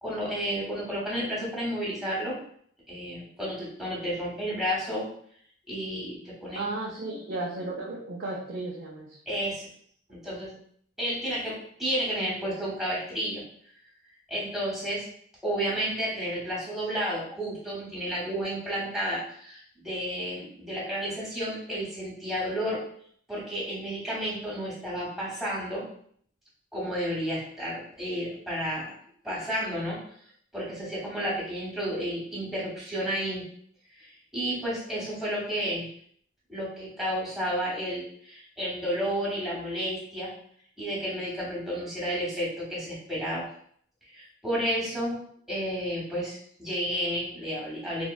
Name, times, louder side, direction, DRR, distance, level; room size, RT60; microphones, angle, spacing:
voice 1, 0.0-2.4 2.9-5.1 5.7-6.7 9.3-9.6 10.1-10.5 11.0-13.4 14.3-15.1 15.4-22.8 23.3-25.9 26.7-28.9 29.2-30.0 30.5-33.4 34.0-35.9 36.5-40.3 40.8-43.5 44.1-45.2 45.5-48.0, equal, ahead, -7 dB, 0.9 m, -31 dB
voice 2, 6.5-9.2, right 2 dB, 55° right, -5 dB, 0.5 m, -34 dB
3.5 x 2.1 x 2.2 m, 0.63 s
head